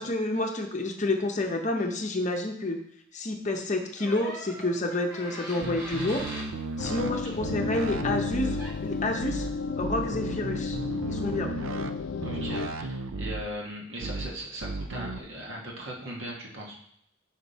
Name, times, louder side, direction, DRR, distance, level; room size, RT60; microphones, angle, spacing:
voice 1, 0.0-2.8 3.1-6.3 6.8-9.5 9.8-10.8 11.1-11.5, left 2 dB, 35° left, 3 dB, 0.7 m, -29 dB
Door, 4.0-6.5 8.3-8.4 8.6-9.0, equal, 20° right, 2.1 m, -41 dB
sound 1, 5.6-7.1 7.4-8.6 9.2-9.5 9.8-11.9 12.2-13.4 14.0-14.3 14.6-15.2, right 3 dB, 90° right, 0.5 m, -35 dB
sound 2, 6.8-12.7, left 4 dB, 75° left, 0.4 m, -33 dB
voice 2, 12.2-16.9, right 1 dB, 70° right, -2 dB, 1.5 m, -39 dB
5.2 x 5.0 x 4.1 m, 0.74 s
head